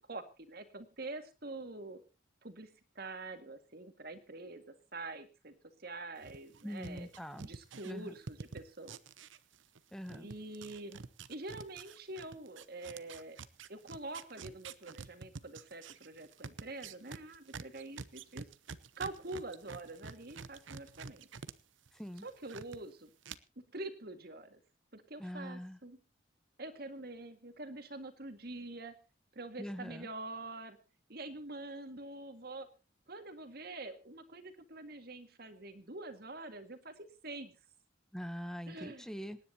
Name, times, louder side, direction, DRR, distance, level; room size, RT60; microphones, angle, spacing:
voice 1, 0.1-2.0 2.4-2.7 3.0-4.6 4.9-5.5 5.8-7.1 7.4-9.0 10.1-11.0 11.3-13.4 13.7-18.5 19.0-21.3 22.2-23.1 23.7-24.6 24.9-26.0 26.6-28.9 29.4-30.8 31.1-32.7 33.1-37.5 38.7-39.1, right 2 dB, 50° right, 8 dB, 1.9 m, -45 dB
sound 1, 6.2-9.8 10.1-21.5 21.9-22.8 23.2-23.3, right 5 dB, 70° right, 0.8 m, -48 dB
voice 2, 6.6-7.5 7.8-8.2 9.9-10.3 21.9-22.3 25.2-25.8 29.6-30.1 38.1-39.4, equal, 5° left, 12 dB, 0.9 m, -43 dB
26.5 x 10.0 x 2.8 m, 0.32 s
head